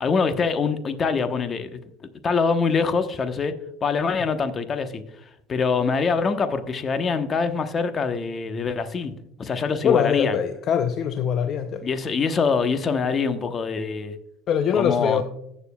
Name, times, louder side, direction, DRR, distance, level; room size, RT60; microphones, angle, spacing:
voice 1, 0.0-1.8 2.2-3.5 3.8-5.0 5.5-9.1 9.4-10.4 11.8-14.2 14.8-15.2, left 5 dB, 40° left, 1.0 m, -24 dB
voice 2, 9.8-11.8 14.5-15.2, left 8 dB, 55° left, 0.6 m, -23 dB
15.5 x 6.9 x 2.3 m
supercardioid pair, 80°, 0 cm